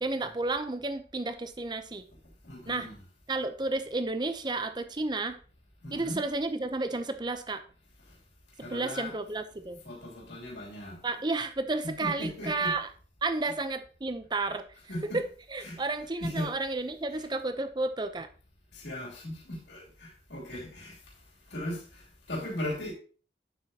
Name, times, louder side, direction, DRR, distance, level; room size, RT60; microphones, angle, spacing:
voice 1, 0.0-2.0 2.7-2.9 3.3-5.4 5.9-7.6 8.7-9.8 11.0-12.9 13.2-14.6 15.1-15.2 15.5-18.3, right 3 dB, 25° right, 0.6 m, -32 dB
voice 2, 2.4-3.0 5.8-6.2 8.1-8.2 8.6-9.1 9.8-11.0 11.8-12.7 14.9-15.2 15.6-15.8 16.2-16.5 17.1-17.3 18.7-21.0 21.5-22.9, left 1 dB, 75° left, 2.9 m, -38 dB
9.0 x 7.4 x 2.8 m
head